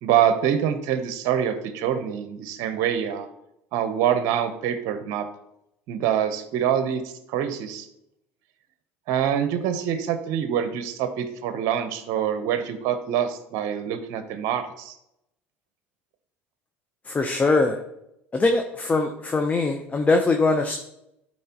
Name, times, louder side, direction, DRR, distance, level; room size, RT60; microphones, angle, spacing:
voice 1, 0.0-3.3 3.7-5.3 5.9-7.9 9.1-15.0, right 9 dB, 65° right, 9 dB, 0.9 m, -25 dB
voice 2, 17.1-17.8 18.3-20.8, left 3 dB, 25° left, 4 dB, 0.8 m, -22 dB
12.0 x 4.4 x 3.0 m, 0.81 s
supercardioid pair, 85°, 6 cm